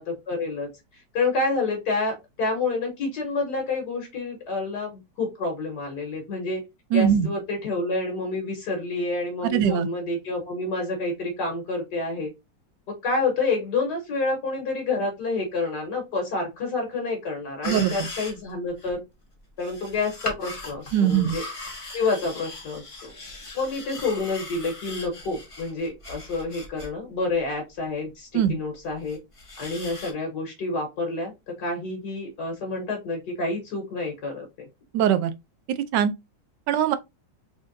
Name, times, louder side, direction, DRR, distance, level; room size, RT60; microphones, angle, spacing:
voice 1, 0.1-6.6 6.9-12.3 13.0-19.0 19.6-21.4 21.9-23.1 23.5-29.2 29.6-31.3 31.6-34.7, left 3 dB, 70° left, 1.8 m, -28 dB
voice 2, 6.9-7.3 9.4-9.9 17.6-18.1 20.9-21.4 28.3-28.5 34.9-35.3 35.8-36.1 36.7-37.0, right 9 dB, 80° right, 1.2 m, -21 dB
sound 1, 17.6-18.5 18.8-18.9 19.6-26.9 27.3-27.4 28.7-30.1, left 2 dB, 25° left, 0.9 m, -38 dB
3.6 x 3.6 x 2.5 m
omnidirectional pair, 1.9 m